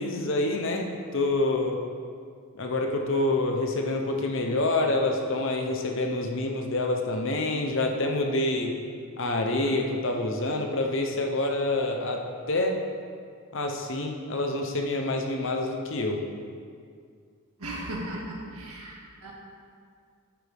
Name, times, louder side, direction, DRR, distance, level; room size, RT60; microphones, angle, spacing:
voice 1, 0.0-1.8 2.6-8.7 9.2-12.2 12.5-12.8 13.5-16.2, left 2 dB, 55° left, 2 dB, 0.9 m, -27 dB
voice 2, 17.6-19.3, right 1 dB, 80° right, -3 dB, 2.1 m, -36 dB
10.5 x 8.7 x 3.6 m, 2.1 s
head